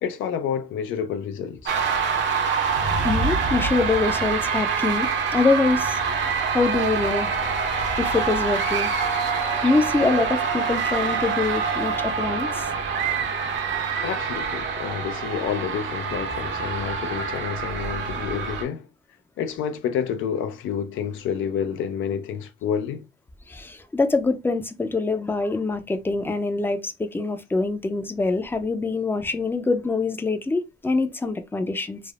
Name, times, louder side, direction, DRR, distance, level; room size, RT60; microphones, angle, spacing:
voice 1, 0.0-1.7 14.0-18.9 19.4-23.0, left 8 dB, 80° left, 0.4 m, -29 dB
London Bridge - Mass scream in Tate Modern, 1.7-18.6, right 5 dB, 70° right, 0.8 m, -25 dB
voice 2, 3.0-6.0 6.5-7.3 8.0-8.9 9.6-12.7 23.5-32.0, left 3 dB, 10° left, 0.4 m, -24 dB
3.3 x 2.1 x 2.4 m
cardioid pair, 90°, 20 cm